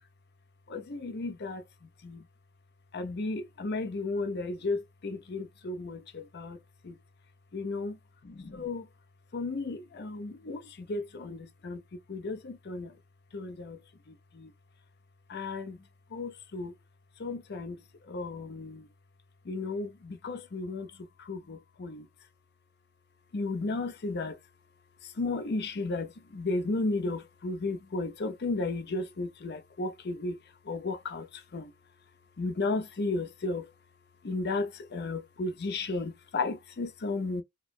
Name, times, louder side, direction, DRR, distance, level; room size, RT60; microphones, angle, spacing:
voice 1, 0.7-1.6 2.0-2.2 2.9-6.6 6.8-7.0 7.5-8.0 8.2-8.9 9.3-12.9 13.3-13.8 14.1-14.5 15.3-15.8 16.1-16.7 17.2-17.8 18.1-18.9 19.4-22.1 23.3-24.4 25.0-30.4 30.6-31.7 32.4-33.7 34.2-37.4, left 3 dB, 50° left, 0.6 m, -34 dB
3.0 x 2.0 x 2.3 m
head